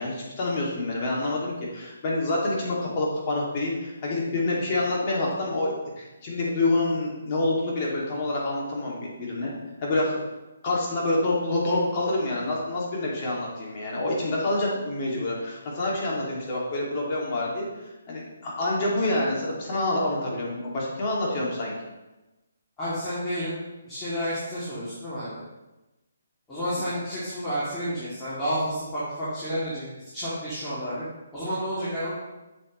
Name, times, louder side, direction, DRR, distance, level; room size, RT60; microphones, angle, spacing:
voice 1, 0.0-9.5 9.8-10.2 10.6-17.7 18.1-21.7 26.7-26.8, left 2 dB, 35° left, -4 dB, 2.4 m, -27 dB
voice 2, 22.8-23.5 23.8-25.4 26.5-31.0 31.3-32.1, equal, 10° left, -13 dB, 2.6 m, -30 dB
7.7 x 7.5 x 3.2 m, 1.0 s
hypercardioid pair, 155°, 0 cm